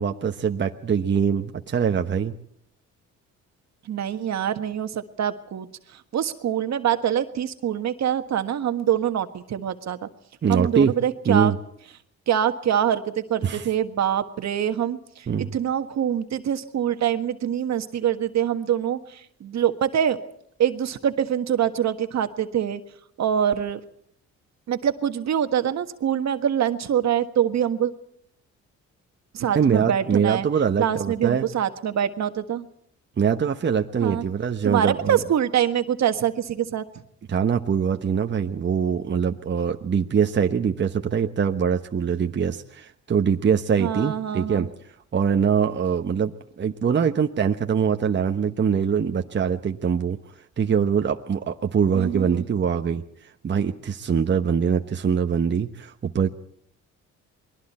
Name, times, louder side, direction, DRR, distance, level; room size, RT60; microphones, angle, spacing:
voice 1, 0.0-2.3 10.4-10.9 11.2-11.6 13.4-13.6 15.3-15.5 29.5-31.5 33.2-35.2 37.3-44.7 45.1-50.2 50.6-53.0 53.4-56.3, right 7 dB, 40° right, 5 dB, 1.2 m, -23 dB
voice 2, 3.8-10.1 10.5-11.5 12.3-15.3 15.5-20.2 20.6-22.8 23.2-23.8 24.7-27.9 29.3-30.5 30.8-32.7 34.0-34.2 34.6-36.9 43.8-44.7 51.9-52.4, right 9 dB, 65° right, 8 dB, 1.6 m, -24 dB
29.0 x 21.5 x 4.4 m, 0.67 s
cardioid pair, 90°, 30 cm